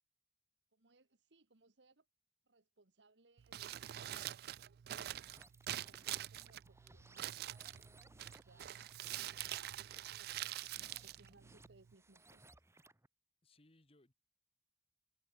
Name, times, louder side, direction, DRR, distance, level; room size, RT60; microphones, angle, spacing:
voice 1, 0.7-2.1 2.4-4.9 5.7-7.6 7.8-8.8 9.1-9.4 10.0-12.6, right 3 dB, 75° right, 1.6 m, -69 dB
Crumpling crinkling, 3.4-11.9, right 13 dB, 60° right, 0.3 m, -45 dB
sound 1, 3.6-4.3 5.0-13.1, right 2 dB, 15° right, 2.2 m, -64 dB
voice 2, 10.7-11.0 13.4-14.1, left 2 dB, 35° left, 1.7 m, -69 dB
head